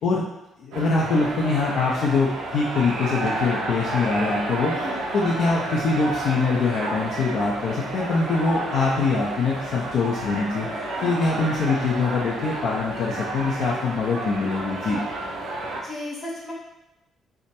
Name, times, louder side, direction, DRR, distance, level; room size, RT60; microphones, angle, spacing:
voice 1, 0.6-4.7 5.1-10.7 11.0-15.0, left 4 dB, 60° left, -4 dB, 0.3 m, -23 dB
sound 1, 0.7-15.8, right 2 dB, 65° right, 0.4 m, -31 dB
voice 2, 11.0-11.5 15.8-16.5, left 1 dB, 45° left, -5 dB, 0.8 m, -35 dB
2.2 x 2.1 x 2.8 m, 0.93 s
figure-of-eight pair, 45°, 0 cm